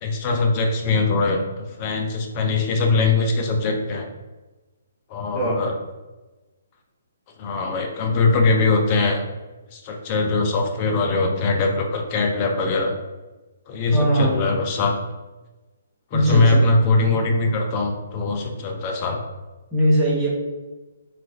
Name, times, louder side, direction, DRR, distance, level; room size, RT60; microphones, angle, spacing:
voice 1, 0.0-4.1 5.1-5.7 7.4-9.2 9.7-12.9 13.7-14.9 16.1-19.2, left 3 dB, 35° left, 3 dB, 0.5 m, -21 dB
voice 2, 5.3-5.7 13.9-14.3 16.1-16.6 19.7-20.3, right 1 dB, 10° right, -6 dB, 0.9 m, -20 dB
2.9 x 2.4 x 2.7 m, 1.1 s
figure-of-eight pair, 135°, 0 cm